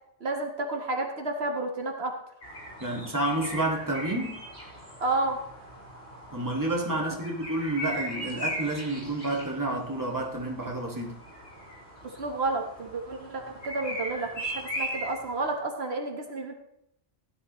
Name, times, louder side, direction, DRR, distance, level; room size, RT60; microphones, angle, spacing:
voice 1, 0.2-2.1 5.0-5.4 12.2-16.5, right 2 dB, 70° right, 3 dB, 1.6 m, -31 dB
sound 1, 2.4-15.5, equal, 80° left, 5.7 m, -39 dB
voice 2, 2.8-4.4 6.3-11.1, right 1 dB, 15° right, 0 dB, 2.0 m, -29 dB
17.0 x 11.0 x 3.1 m, 0.75 s
omnidirectional pair, 1.1 m